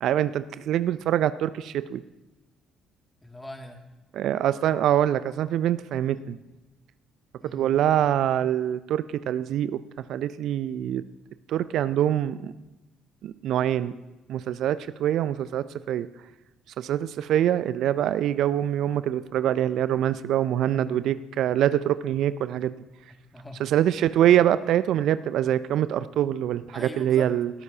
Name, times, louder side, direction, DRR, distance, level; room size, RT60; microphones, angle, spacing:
voice 1, 0.0-2.0 4.1-6.4 7.5-9.8 10.1-11.0 11.5-12.5 13.2-13.9 14.3-16.1 16.8-22.7 23.6-27.5, right 11 dB, 60° right, 15 dB, 0.4 m, -24 dB
voice 2, 3.2-3.8 7.4-7.7 20.8-21.1 23.1-23.7 26.7-27.3, left 1 dB, 10° left, 2 dB, 2.3 m, -42 dB
19.5 x 12.0 x 2.8 m, 1.1 s
hypercardioid pair, 50°, 0 cm